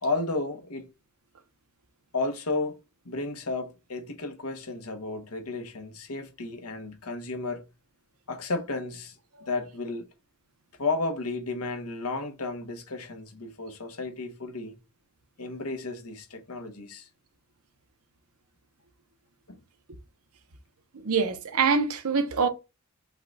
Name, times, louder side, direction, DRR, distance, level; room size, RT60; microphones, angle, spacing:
voice 1, 0.0-0.9 2.1-2.7 3.0-7.7 8.3-10.1 10.8-14.8 15.4-17.1 19.5-19.6, left 3 dB, 85° left, 1.1 m, -33 dB
voice 2, 20.9-22.5, right 5 dB, 80° right, 0.8 m, -25 dB
5.5 x 2.4 x 4.0 m
head